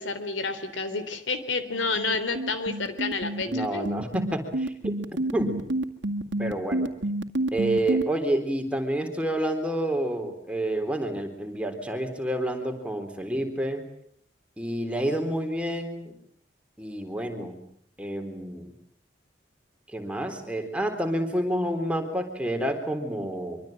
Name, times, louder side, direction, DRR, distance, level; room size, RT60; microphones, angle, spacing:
voice 1, 0.0-4.0, left 4 dB, 85° left, 11 dB, 3.5 m, -30 dB
sound 1, 1.7-8.0, right 1 dB, 75° right, 2.2 m, -28 dB
voice 2, 3.5-4.9 5.3-5.6 6.4-6.9 7.5-13.8 14.6-16.1 16.8-17.6 18.0-18.7 19.9-23.6, right 1 dB, 5° right, 4 dB, 3.7 m, -29 dB
24.5 x 24.5 x 9.0 m, 0.66 s
head